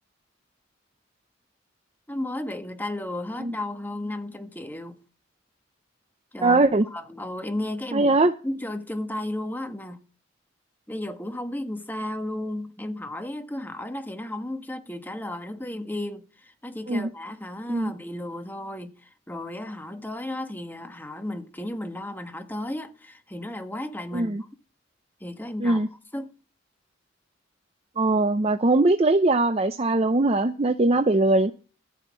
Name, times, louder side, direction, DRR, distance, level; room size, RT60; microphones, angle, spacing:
voice 1, 2.1-5.0 6.3-8.2 8.4-10.0 10.9-24.5 25.2-25.8 26.1-26.4, left 1 dB, 10° left, 1.3 m, -34 dB
voice 2, 6.4-6.9 7.9-8.3 16.9-17.1 17.7-17.9 24.1-24.4 25.6-25.9 28.0-31.5, right 2 dB, 30° right, 0.6 m, -21 dB
14.0 x 5.7 x 8.4 m
head